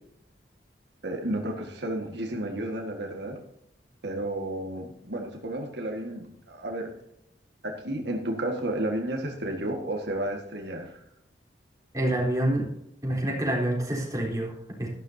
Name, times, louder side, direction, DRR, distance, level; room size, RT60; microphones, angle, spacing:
voice 1, 1.0-3.4 4.0-6.9 7.6-11.0, right 1 dB, 70° right, 2 dB, 1.8 m, -32 dB
voice 2, 11.9-12.7 13.0-14.9, right 1 dB, 20° right, -2 dB, 3.6 m, -27 dB
13.5 x 12.0 x 2.8 m, 0.74 s
head